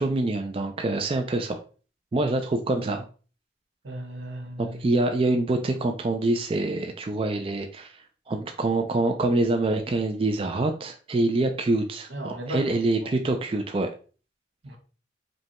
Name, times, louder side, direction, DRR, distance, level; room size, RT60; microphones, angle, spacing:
voice 1, 0.0-1.6 2.1-3.0 4.6-7.9 8.3-13.9, right 2 dB, 30° right, 0.3 m, -25 dB
voice 2, 3.8-4.9 12.1-13.2 14.6-14.8, right 1 dB, 90° right, 1.0 m, -36 dB
5.2 x 2.2 x 2.8 m
head